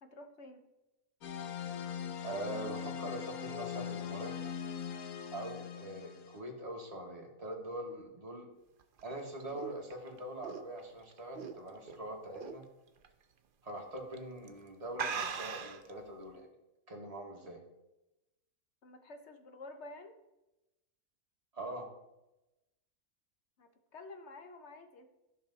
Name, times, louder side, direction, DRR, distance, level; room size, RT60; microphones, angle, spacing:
voice 1, 0.0-0.6 18.8-20.1 23.6-25.0, left 2 dB, 55° left, 7 dB, 1.1 m, -50 dB
sound 1, 1.2-6.4, left 8 dB, 85° left, 1.4 m, -41 dB
voice 2, 2.2-4.3 5.3-8.5 9.0-12.7 13.6-16.5 16.9-17.6 21.5-21.9, right 1 dB, 25° right, 0 dB, 1.7 m, -43 dB
sound 2, 8.8-11.9 12.3-12.7 13.0-13.1 14.0-14.2 14.5-14.6 14.9-15.9, right 6 dB, 50° right, 0.7 m, -39 dB
13.5 x 5.6 x 4.1 m, 0.96 s
omnidirectional pair, 1.5 m